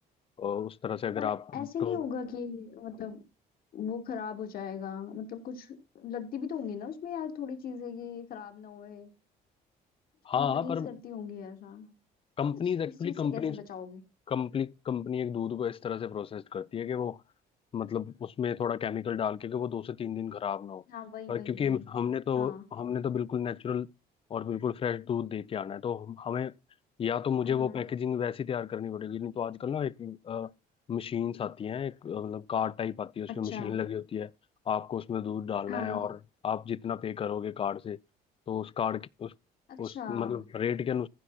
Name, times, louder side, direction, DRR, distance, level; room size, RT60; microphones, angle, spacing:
voice 1, 0.4-2.0 10.2-10.9 12.4-13.6 14.3-17.2 17.7-20.8 21.3-23.9 24.3-26.6 27.0-30.5 30.9-34.3 34.7-36.2 36.4-38.0 38.5-39.3 39.8-41.1, left 8 dB, 35° left, 0.5 m, -32 dB
voice 2, 1.2-3.2 3.7-9.1 10.3-11.9 13.0-14.0 20.9-21.9 22.3-22.6 27.4-27.8 33.3-33.7 35.7-36.0 39.7-40.4, left 7 dB, 60° left, 2.8 m, -38 dB
15.0 x 6.0 x 4.2 m
cardioid pair, 110°, 17 cm